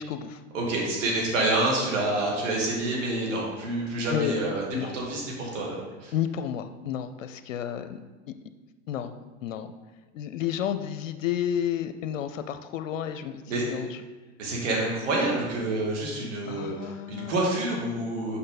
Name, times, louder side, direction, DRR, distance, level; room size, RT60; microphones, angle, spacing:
voice 1, 0.0-0.4 4.1-4.3 4.7-5.0 6.1-8.0 8.9-9.1 9.4-9.7 10.1-13.9 16.5-17.5, left 9 dB, 90° left, 10 dB, 0.5 m, -31 dB
voice 2, 0.5-6.1 13.5-13.7 14.4-18.4, right 2 dB, 75° right, -2 dB, 2.4 m, -28 dB
6.6 x 5.4 x 4.1 m, 1.3 s
hypercardioid pair, 105°, 37 cm